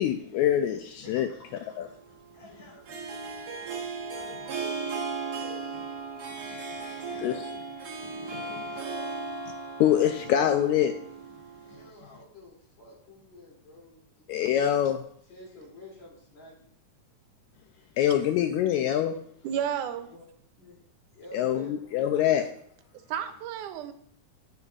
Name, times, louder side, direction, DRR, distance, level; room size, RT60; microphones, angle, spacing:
voice 1, 0.0-1.3 1.8-1.9 7.2-7.4 8.2-8.4 9.8-11.0 14.3-15.0 18.0-19.2 21.3-22.4, left 10 dB, 80° left, 7 dB, 1.8 m, -24 dB
voice 2, 1.0-1.5 2.3-2.9 3.2-3.5 4.1-5.0 5.3-5.6 6.7-7.4 8.3-9.1 11.7-14.8 15.3-16.7 17.7-18.2 20.1-20.3 20.6-20.8 21.1-22.5, left 1 dB, 60° left, -4 dB, 4.2 m, -49 dB
Harp, 1.5-11.9, right 4 dB, 55° right, 1.1 m, -37 dB
voice 3, 19.4-20.1 23.1-23.9, right 9 dB, 85° right, 9 dB, 2.2 m, -31 dB
10.5 x 9.6 x 2.4 m, 0.65 s
omnidirectional pair, 3.5 m